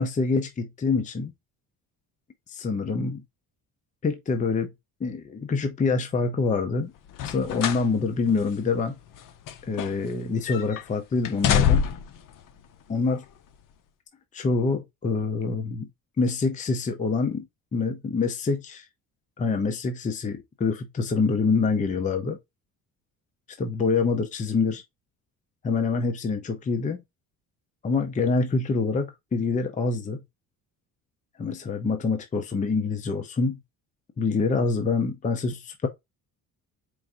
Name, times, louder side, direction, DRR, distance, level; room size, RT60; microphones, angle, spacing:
voice 1, 0.0-1.3 2.5-3.2 4.0-4.7 5.0-6.9 7.2-8.9 9.7-11.8 12.9-13.2 14.3-15.9 16.2-17.4 17.7-18.9 19.4-22.4 23.6-24.8 25.6-27.0 27.8-30.2 31.4-33.6 34.2-35.9, left 4 dB, 20° left, 0.6 m, -26 dB
sound 1, 7.1-7.9 8.3-8.4 9.1-10.2 10.5-10.8 11.2-12.2 13.1-13.2, left 8 dB, 60° left, 0.7 m, -25 dB
4.6 x 2.6 x 3.6 m
cardioid pair, 145°, 37 cm